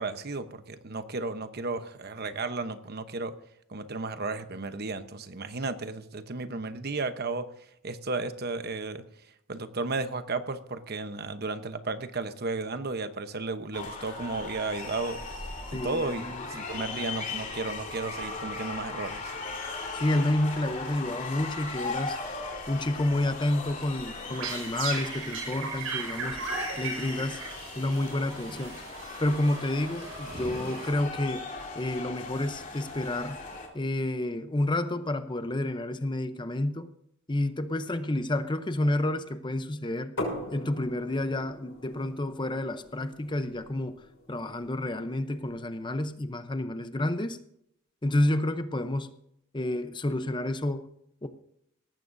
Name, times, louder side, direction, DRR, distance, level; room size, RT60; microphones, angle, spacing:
voice 1, 0.0-3.3 3.7-7.5 7.8-9.0 9.5-15.2 15.7-19.3, right 3 dB, 50° right, 0.9 m, -34 dB
sound 1, 13.7-33.7, left 3 dB, 35° left, 2.9 m, -38 dB
voice 2, 15.7-16.4 19.9-22.2 22.7-26.4 26.8-27.4 27.7-28.8 29.2-31.5 31.8-33.4 33.7-36.9 37.3-40.1 40.5-44.0 44.3-47.4 48.0-49.1 49.5-50.9 51.2-51.3, left 1 dB, 20° left, 0.7 m, -29 dB
sound 2, 24.1-31.4, right 3 dB, 70° right, 5.1 m, -37 dB
sound 3, 40.2-45.8, left 1 dB, 70° left, 6.0 m, -41 dB
18.5 x 15.0 x 2.7 m
head